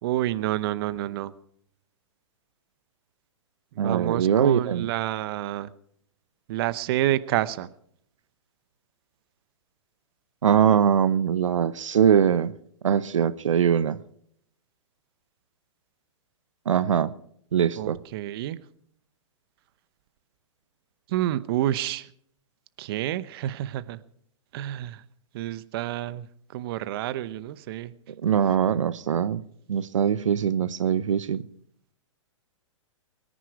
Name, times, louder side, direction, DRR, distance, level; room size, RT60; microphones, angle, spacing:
voice 1, 0.0-1.3 3.8-5.7 6.5-7.7 17.8-18.6 21.1-22.1 22.8-24.0 24.5-25.0 25.3-26.2 26.5-27.9, right 14 dB, 50° right, 0.8 m, -28 dB
voice 2, 3.8-4.9 10.4-12.5 12.8-14.0 16.7-17.1 17.5-18.0 28.2-29.4 29.7-31.4, right 8 dB, 80° right, 0.8 m, -22 dB
23.0 x 10.0 x 4.6 m
hypercardioid pair, 120°, 16 cm